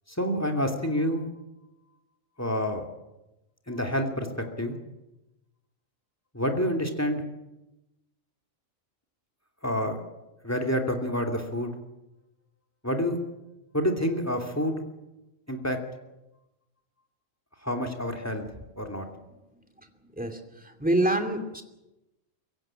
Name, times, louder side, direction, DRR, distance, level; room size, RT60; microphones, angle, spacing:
voice 1, 0.1-1.3 2.4-2.9 3.7-4.8 6.3-7.2 9.6-10.0 10.4-11.8 12.8-13.2 13.7-14.8 15.5-15.8 17.6-18.4 18.8-19.1, equal, 10° left, 5 dB, 2.7 m, -28 dB
voice 2, 20.1-21.6, right 1 dB, 5° right, 5 dB, 2.4 m, -26 dB
23.5 x 15.5 x 8.8 m, 0.96 s
omnidirectional pair, 1.4 m